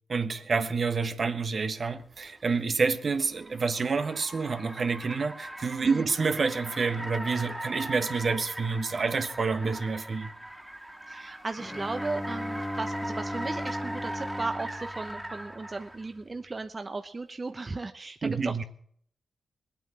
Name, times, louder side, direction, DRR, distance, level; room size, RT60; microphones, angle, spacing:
voice 1, 0.1-10.3 18.2-18.6, right 4 dB, 55° right, 1.3 m, -28 dB
Car, 2.2-16.1, right 1 dB, 10° right, 2.1 m, -40 dB
voice 2, 11.1-18.6, right 3 dB, 40° right, 1.0 m, -36 dB
Bowed string instrument, 11.6-15.9, equal, 10° left, 1.3 m, -37 dB
20.0 x 8.8 x 6.5 m
supercardioid pair, 45°, 0 cm